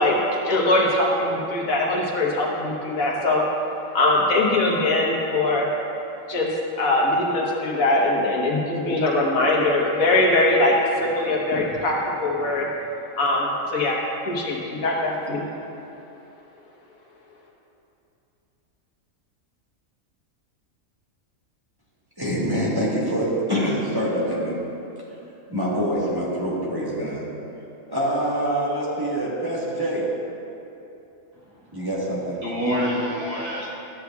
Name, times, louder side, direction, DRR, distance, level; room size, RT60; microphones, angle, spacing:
voice 1, 0.0-3.4 3.9-5.7 6.3-6.5 6.8-12.7 13.2-14.0 14.3-15.5, left 2 dB, 80° left, -2 dB, 1.5 m, -21 dB
voice 2, 22.2-24.6 25.5-27.2 27.9-30.1 31.7-32.4, equal, 15° right, -7 dB, 1.3 m, -25 dB
voice 3, 31.3-31.9 32.4-33.8, equal, 45° right, -8 dB, 2.1 m, -27 dB
12.5 x 7.7 x 2.3 m, 3.0 s
omnidirectional pair, 1.4 m